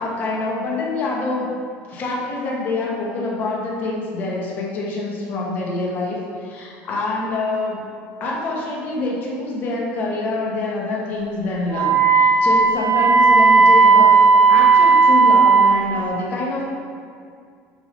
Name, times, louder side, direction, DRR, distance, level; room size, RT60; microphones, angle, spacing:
voice 1, 0.0-1.5 1.9-7.8 8.2-14.1 14.5-16.6, left 2 dB, 40° left, -3 dB, 1.1 m, -26 dB
Wind instrument woodwind instrument, 11.7-15.8, right 4 dB, 85° right, 1.5 m, -13 dB
6.0 x 3.7 x 5.3 m, 2.2 s
cardioid pair, 155°, 5 cm